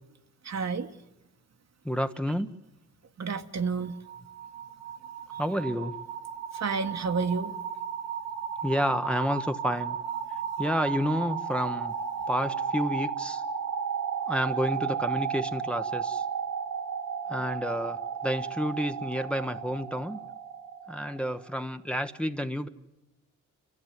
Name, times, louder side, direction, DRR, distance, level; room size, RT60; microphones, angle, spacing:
voice 1, 0.4-0.9 3.2-4.0 6.6-7.5, right 5 dB, 50° right, 7 dB, 1.6 m, -30 dB
voice 2, 1.8-2.6 5.4-6.0 8.6-10.0 10.6-11.9 12.3-13.4 14.2-16.2 17.3-20.2 20.9-22.7, equal, 5° left, 8 dB, 1.1 m, -30 dB
sound 1, 3.7-21.5, right 7 dB, 85° right, 2.3 m, -34 dB
29.0 x 13.5 x 9.5 m, 0.99 s
cardioid pair, 65°, 33 cm